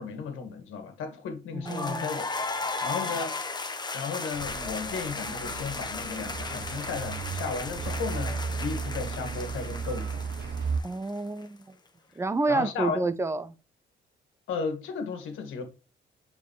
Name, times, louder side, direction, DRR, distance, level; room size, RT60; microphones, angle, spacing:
voice 1, 0.0-2.3 2.6-3.3 3.9-10.3 12.5-13.1 14.5-15.6, left 5 dB, 85° left, 1.8 m, -34 dB
voice 2, 1.5-2.0 10.8-11.6 12.2-13.5, right 3 dB, 15° right, 0.7 m, -29 dB
sound 1, 1.7-11.4, left 3 dB, 20° left, 1.0 m, -36 dB
Truck, 4.3-10.8, right 5 dB, 55° right, 0.9 m, -35 dB
sound 2, 8.1-10.6 12.3-12.4, left 7 dB, 65° left, 1.2 m, -50 dB
7.0 x 4.7 x 3.2 m
cardioid pair, 90°, 20 cm